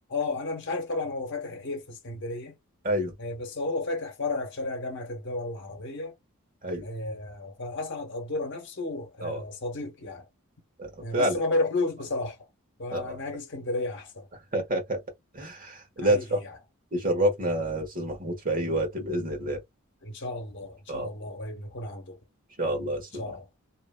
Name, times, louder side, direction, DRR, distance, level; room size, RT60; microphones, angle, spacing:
voice 1, 0.0-2.6 3.2-6.1 6.8-10.3 11.0-12.4 12.8-14.3 16.0-16.6 20.0-22.2 23.1-23.5, left 2 dB, 55° left, 1.0 m, -33 dB
voice 2, 10.8-11.4 12.9-13.2 14.5-15.0 15.3-16.4 16.9-19.6 20.9-21.1 22.6-23.2, right 1 dB, 40° right, 1.3 m, -28 dB
2.9 x 2.6 x 2.2 m
head